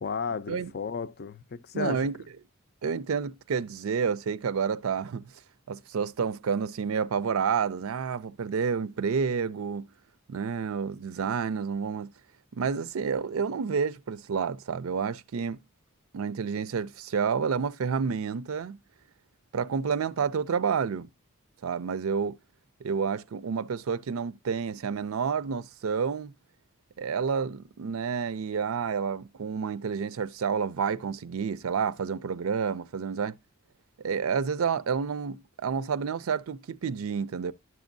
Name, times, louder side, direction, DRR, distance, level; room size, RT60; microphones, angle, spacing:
voice 1, 0.0-2.1, left 5 dB, 50° left, 0.4 m, -33 dB
voice 2, 1.7-2.1 2.8-5.2 5.7-9.9 10.3-12.1 12.5-15.6 16.1-18.8 19.5-21.1 21.6-22.4 22.8-26.3 27.0-33.4 34.0-37.5, right 6 dB, 85° right, 0.4 m, -29 dB
11.0 x 6.2 x 2.5 m
head